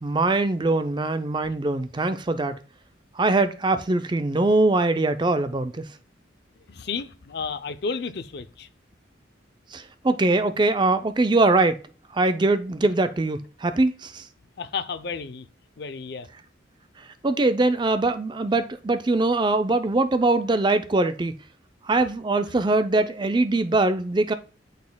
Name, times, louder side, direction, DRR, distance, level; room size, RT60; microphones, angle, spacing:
voice 1, 0.0-2.6 3.2-5.9 9.7-11.8 12.1-14.2 17.2-21.4 21.9-24.3, right 2 dB, 25° right, 0.4 m, -22 dB
voice 2, 6.7-8.7 14.6-15.5 15.8-16.3 22.5-22.6, left 5 dB, 55° left, 0.5 m, -32 dB
12.0 x 4.2 x 2.2 m
head